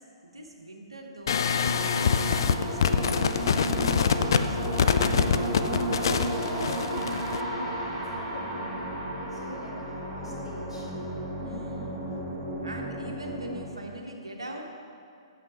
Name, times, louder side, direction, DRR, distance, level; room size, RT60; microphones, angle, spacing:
voice 1, 0.0-5.4 11.4-12.0 12.6-14.6, right 2 dB, 75° right, 1 dB, 1.2 m, -43 dB
sound 1, 1.3-7.4, left 7 dB, 50° left, 0.4 m, -25 dB
sound 2, 1.6-13.7, right 1 dB, 15° right, 1.2 m, -33 dB
voice 2, 5.8-10.9, equal, 85° left, -5 dB, 2.3 m, -42 dB
8.8 x 6.8 x 4.3 m, 2.4 s
figure-of-eight pair, 120°, 3 cm